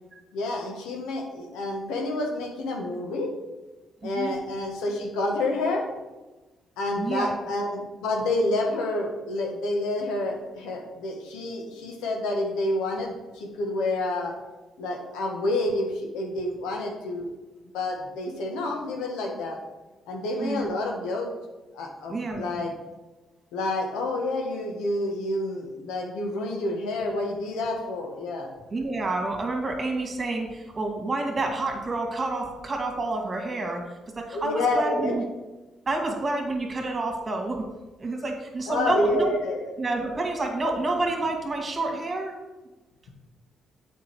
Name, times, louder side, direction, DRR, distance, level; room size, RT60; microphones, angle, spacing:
voice 1, 0.3-3.3 4.0-5.9 6.8-14.3 14.8-17.3 17.7-19.6 20.1-21.3 21.7-22.7 23.5-28.5 34.3-35.2 38.7-39.7, left 2 dB, 85° left, 1 dB, 1.3 m, -28 dB
voice 2, 4.0-4.3 7.0-7.4 20.4-20.7 22.1-22.6 28.7-33.8 34.2-35.2 35.9-37.6 38.0-39.3 39.8-42.3, right 2 dB, 35° right, 2 dB, 2.0 m, -29 dB
7.6 x 5.3 x 4.6 m, 1.1 s
supercardioid pair, 60°, 0 cm